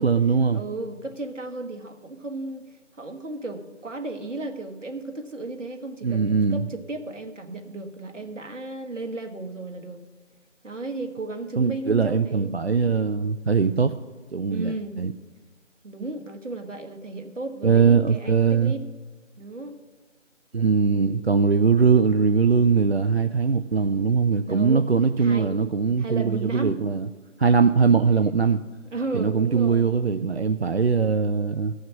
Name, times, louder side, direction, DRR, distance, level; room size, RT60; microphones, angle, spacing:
voice 1, 0.0-0.6 6.0-6.6 11.6-13.9 14.3-15.1 17.6-18.7 20.5-27.1 27.4-28.6 29.1-31.7, right 5 dB, 55° right, 9 dB, 0.4 m, -21 dB
voice 2, 0.5-10.0 10.6-12.5 14.5-15.0 15.8-18.9 19.4-19.8 24.4-24.9 25.2-25.6 26.0-26.8 27.8-27.9 28.9-29.9, right 2 dB, 75° right, 6 dB, 1.4 m, -34 dB
14.0 x 6.4 x 5.8 m, 1.3 s
figure-of-eight pair, 170°, 37 cm